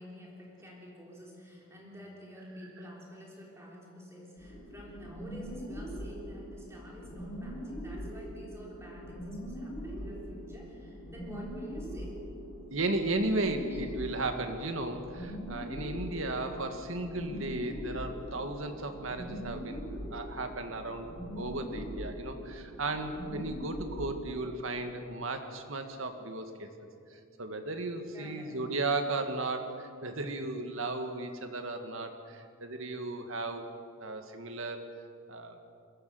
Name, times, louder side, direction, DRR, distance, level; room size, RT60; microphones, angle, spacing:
voice 1, 0.0-12.1 13.7-13.8 28.1-28.7, equal, 15° right, -3 dB, 3.8 m, -49 dB
sound 1, 4.4-24.3, equal, 65° left, 7.0 m, -42 dB
voice 2, 12.7-19.8 20.1-26.7 27.1-33.7 34.0-34.8 35.3-35.6, right 2 dB, 65° right, 6 dB, 1.9 m, -35 dB
22.5 x 17.0 x 7.9 m, 2.5 s
head